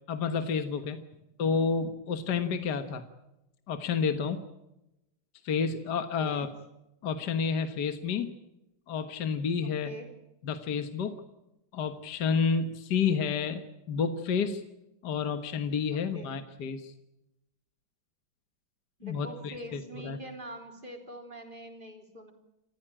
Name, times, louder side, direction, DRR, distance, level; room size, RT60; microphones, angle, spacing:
voice 1, 0.1-1.0 1.4-3.1 3.7-4.5 5.4-6.5 7.0-8.3 8.9-9.9 10.4-11.3 11.7-14.6 15.0-16.9 19.0-20.2, left 6 dB, 55° left, 8 dB, 1.8 m, -30 dB
voice 2, 6.2-6.5 9.6-10.1 15.9-16.4 19.0-22.3, equal, 25° right, 4 dB, 3.8 m, -44 dB
28.5 x 15.0 x 8.8 m, 0.90 s
omnidirectional pair, 2.3 m